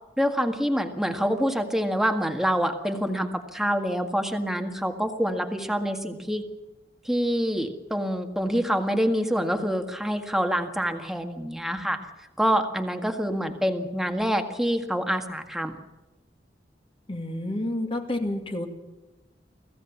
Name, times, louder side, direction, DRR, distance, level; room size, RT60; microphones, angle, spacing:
voice 1, 0.2-6.4 7.1-12.0 12.4-15.8, equal, ahead, 5 dB, 1.8 m, -26 dB
voice 2, 17.1-18.7, left 1 dB, 30° left, 4 dB, 2.4 m, -29 dB
24.5 x 16.0 x 7.3 m, 1.1 s
head